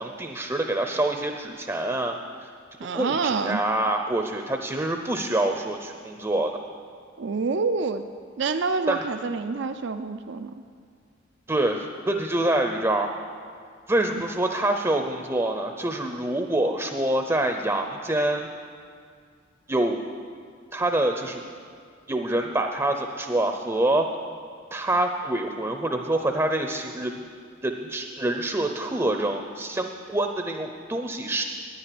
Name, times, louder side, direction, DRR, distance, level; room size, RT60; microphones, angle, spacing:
voice 1, 0.0-2.2 2.4-2.5 2.9-6.6 8.9-9.0 11.5-13.1 13.9-18.5 19.7-20.0 20.7-21.4 22.1-24.1 24.7-27.2 27.6-31.4, right 1 dB, 15° right, 4 dB, 0.6 m, -26 dB
voice 2, 2.8-3.6 7.2-8.0 8.4-10.5, right 4 dB, 60° right, 9 dB, 0.5 m, -27 dB
10.0 x 9.0 x 10.0 m, 2.2 s
head